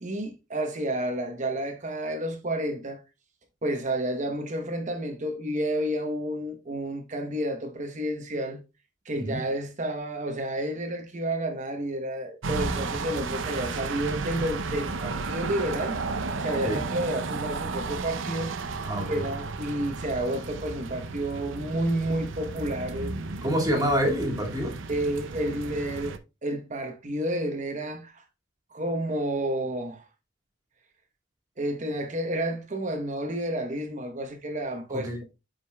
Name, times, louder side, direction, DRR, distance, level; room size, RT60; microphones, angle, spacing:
voice 1, 0.0-3.0 3.6-8.6 9.0-16.0 16.4-18.6 19.0-23.1 24.9-28.2 28.7-30.1 31.6-35.1, right 1 dB, 40° right, 0.9 m, -30 dB
sound 1, 12.4-26.2, right 4 dB, 80° right, 0.7 m, -33 dB
voice 2, 18.8-19.1 23.4-24.7 34.9-35.2, equal, 20° right, 2.2 m, -27 dB
10.0 x 5.1 x 2.3 m
head